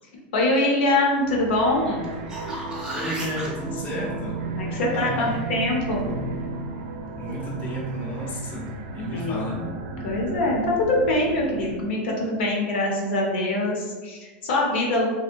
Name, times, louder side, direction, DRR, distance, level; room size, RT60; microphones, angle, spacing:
voice 1, 0.3-2.1 4.5-6.1 9.1-9.7 10.0-15.0, left 1 dB, 75° left, -2 dB, 0.7 m, -24 dB
sound 1, 1.2-12.0, right 3 dB, 60° right, 0.4 m, -35 dB
sound 2, 2.0-3.5 8.3-8.4, right 1 dB, 10° right, 0.6 m, -33 dB
voice 2, 2.9-4.4 4.7-5.5 7.2-8.7 8.9-9.6, equal, 30° left, -3 dB, 0.6 m, -32 dB
2.7 x 2.1 x 2.5 m, 1.4 s
supercardioid pair, 130°, 6 cm